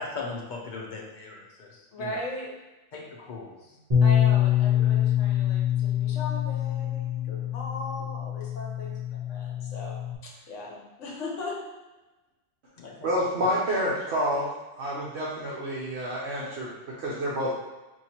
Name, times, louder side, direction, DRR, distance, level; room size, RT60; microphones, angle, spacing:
voice 1, 0.0-2.2 2.9-3.8 12.8-13.1, left 3 dB, 45° left, -2 dB, 0.7 m, -39 dB
voice 2, 1.9-2.5 4.0-11.6, left 1 dB, 65° left, -2 dB, 1.2 m, -38 dB
Bass guitar, 3.9-10.2, left 10 dB, 30° right, 1.1 m, -25 dB
voice 3, 13.0-14.5 14.8-16.7 17.0-17.5, equal, 60° right, -6 dB, 1.0 m, -28 dB
4.4 x 3.0 x 2.9 m, 1.1 s
omnidirectional pair, 1.4 m